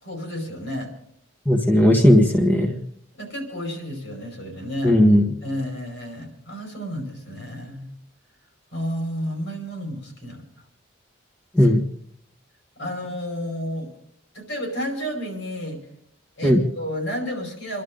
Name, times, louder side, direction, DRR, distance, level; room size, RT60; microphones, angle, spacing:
voice 1, 0.0-0.9 3.1-5.0 5.4-7.9 8.7-10.4 12.8-13.9 14.3-15.9 16.4-17.8, equal, 70° left, 1 dB, 5.4 m, -31 dB
voice 2, 1.4-2.8 4.8-5.3 11.5-11.8 16.4-16.6, left 1 dB, 10° left, 1 dB, 1.5 m, -16 dB
28.0 x 11.5 x 3.9 m, 0.69 s
head